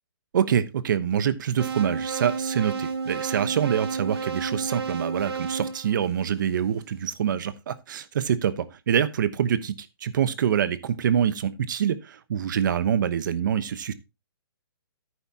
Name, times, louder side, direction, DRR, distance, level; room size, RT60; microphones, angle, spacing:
voice 1, 0.3-9.8 10.0-13.9, right 9 dB, 50° right, 1.0 m, -25 dB
sound 1, 1.6-6.7, right 5 dB, 90° right, 2.4 m, -31 dB
11.0 x 9.1 x 2.8 m
hypercardioid pair, 165°, 13 cm